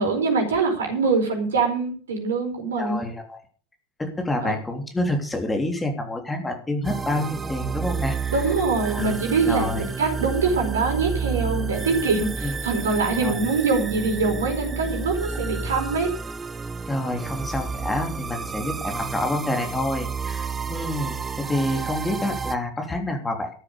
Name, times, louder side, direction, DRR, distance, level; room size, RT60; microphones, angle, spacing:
voice 1, 0.0-3.0 4.4-4.5 8.3-16.1, right 4 dB, 75° right, 3 dB, 4.6 m, -24 dB
voice 2, 2.8-3.4 4.0-8.4 8.9-9.1 9.5-9.8 12.4-12.5 13.2-13.4 16.9-23.5, left 1 dB, 15° left, 3 dB, 3.4 m, -28 dB
sound 1, 6.8-22.6, right 5 dB, 20° right, 1.1 m, -31 dB
14.0 x 8.4 x 6.6 m, 0.42 s
figure-of-eight pair, 70°, 0 cm